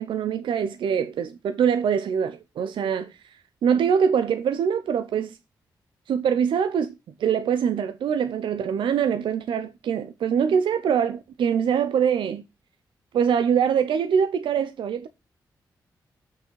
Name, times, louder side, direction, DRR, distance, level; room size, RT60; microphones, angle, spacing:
voice 1, 0.0-3.1 3.6-5.4 6.1-6.9 7.2-12.4 13.1-15.1, right 7 dB, 80° right, 0.6 m, -23 dB
6.2 x 5.8 x 4.6 m
supercardioid pair, 50°, 8 cm